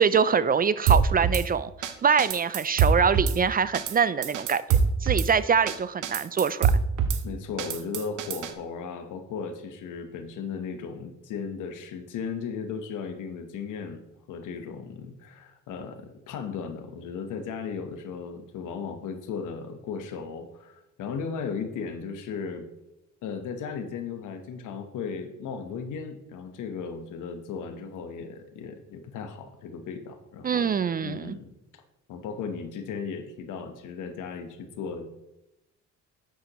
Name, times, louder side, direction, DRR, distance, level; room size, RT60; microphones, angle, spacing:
voice 1, 0.0-1.7 2.0-6.7 30.4-31.4, right 6 dB, 30° right, 16 dB, 0.4 m, -24 dB
Drum kit / Snare drum, 0.9-1.4 1.8-1.9 2.2-3.4 3.7-4.0 4.2-5.3 5.7-5.8 6.0-7.2 7.6-8.5, right 6 dB, 85° right, 0.9 m, -24 dB
voice 2, 7.2-14.0 14.3-22.7 23.2-30.7 31.0-31.5 32.1-35.2, left 6 dB, 85° left, 7 dB, 1.2 m, -36 dB
10.0 x 8.5 x 3.0 m, 0.92 s
cardioid pair, 90°, 30 cm